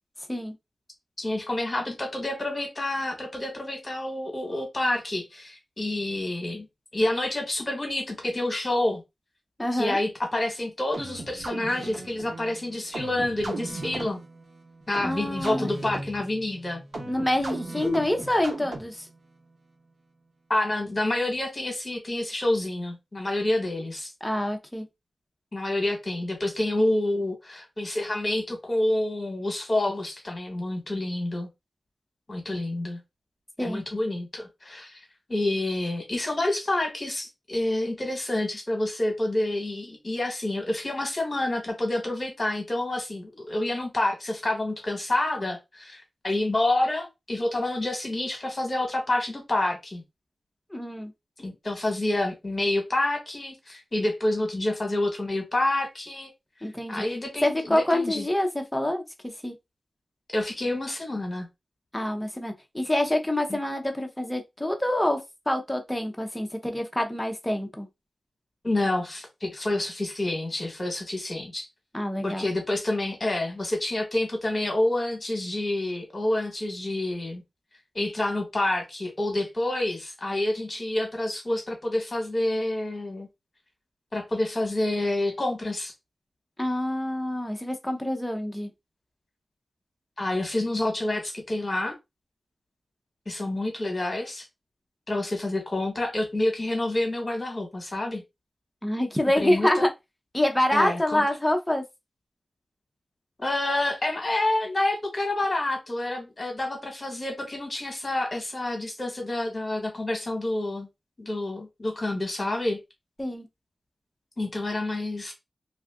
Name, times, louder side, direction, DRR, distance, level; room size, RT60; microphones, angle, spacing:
voice 1, 1.2-6.7 6.9-9.0 9.7-14.2 14.9-16.8 20.5-24.1 25.5-31.5 32.3-33.0 33.6-35.0 35.3-50.0 51.4-56.3 56.9-58.3 60.3-61.5 63.5-63.6 68.6-71.7 72.2-77.4 77.9-83.3 84.1-85.9 90.2-92.0 93.2-94.4 95.1-98.2 99.4-99.8 100.7-101.2 103.4-110.9 111.2-112.8 114.4-115.3, left 1 dB, 30° left, 1.3 m, -28 dB
voice 2, 9.6-10.0 15.0-15.7 17.1-19.1 24.2-24.8 33.6-33.8 50.7-51.1 56.6-57.0 57.4-59.0 59.4-59.5 61.9-65.2 65.5-67.9 71.9-72.5 86.6-88.7 98.8-99.9 100.3-101.8 113.2-113.5, left 1 dB, 10° left, 0.7 m, -26 dB
sound 1, 10.9-19.1, right 2 dB, 70° right, 1.0 m, -37 dB
2.7 x 2.4 x 3.5 m
wide cardioid pair, 125°, 0 cm